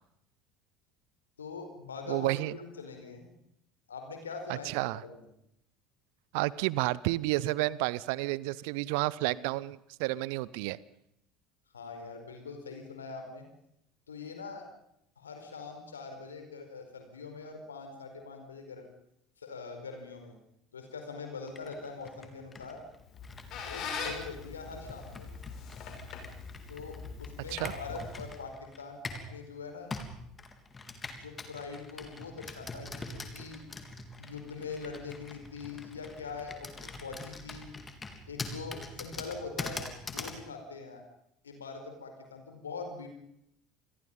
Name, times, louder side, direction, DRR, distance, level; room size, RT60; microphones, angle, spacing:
voice 1, 1.4-3.3 3.9-4.7 5.0-5.3 11.7-13.5 14.1-14.6 15.2-18.9 19.4-20.4 20.7-22.8 23.6-25.3 26.7-29.0 29.3-29.9 31.2-33.6 34.2-37.7 38.3-41.0 41.4-43.1, left 4 dB, 80° left, 5 dB, 4.7 m, -43 dB
voice 2, 2.1-2.6 4.6-5.0 6.3-10.8 27.5-27.7, right 19 dB, 60° right, 22 dB, 0.8 m, -31 dB
Computer keyboard, 21.5-29.3 29.9-40.4, left 3 dB, 20° left, 3.5 m, -44 dB
Squeak, 23.0-28.5, left 5 dB, 50° left, 6.2 m, -42 dB
28.0 x 21.5 x 5.5 m, 0.77 s
figure-of-eight pair, 65°, 0 cm